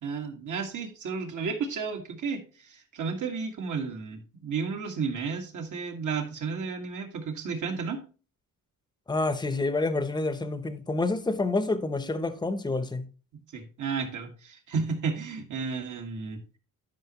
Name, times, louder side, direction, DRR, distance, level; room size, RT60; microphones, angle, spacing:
voice 1, 0.0-8.0 13.5-16.6, right 5 dB, 60° right, 1.7 m, -33 dB
voice 2, 9.1-13.1, left 2 dB, 10° left, 0.8 m, -28 dB
11.5 x 5.2 x 2.9 m
cardioid pair, 80°, 34 cm